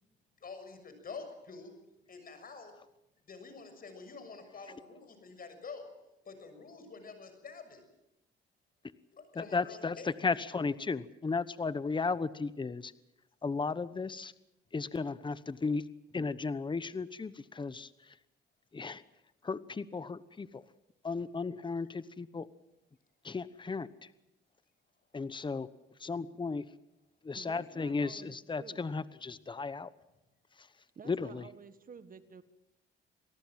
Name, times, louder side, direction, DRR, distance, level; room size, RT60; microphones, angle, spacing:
voice 1, 0.4-1.7 2.1-2.7 3.3-5.9 6.2-7.8 9.1-10.1, left 4 dB, 45° left, 8 dB, 6.7 m, -47 dB
voice 2, 9.3-12.9 13.4-14.3 14.7-15.8 16.1-18.1 18.7-19.0 19.4-20.6 21.0-22.5 23.2-24.1 25.1-25.7 26.0-26.6 27.2-29.9 30.6-30.7 31.1-31.5, left 4 dB, 25° left, 15 dB, 1.1 m, -35 dB
voice 3, 27.3-28.9 30.9-32.4, right 6 dB, 45° right, 12 dB, 1.6 m, -51 dB
26.5 x 18.5 x 7.6 m, 0.92 s
cardioid pair, 90°, 20 cm